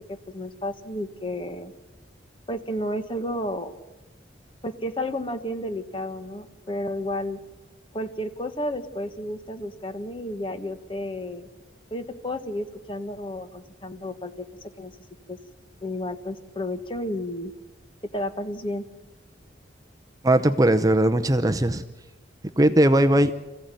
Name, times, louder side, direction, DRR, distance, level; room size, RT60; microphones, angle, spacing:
voice 1, 0.1-1.7 2.5-3.7 4.6-7.4 7.9-11.5 11.9-14.4 14.8-14.9 15.3-15.4 15.8-17.5 18.1-18.8, left 1 dB, 25° left, 8 dB, 1.4 m, -32 dB
voice 2, 20.2-21.8 22.6-23.3, right 1 dB, 20° right, 8 dB, 0.7 m, -19 dB
26.0 x 15.5 x 9.2 m, 1.1 s
head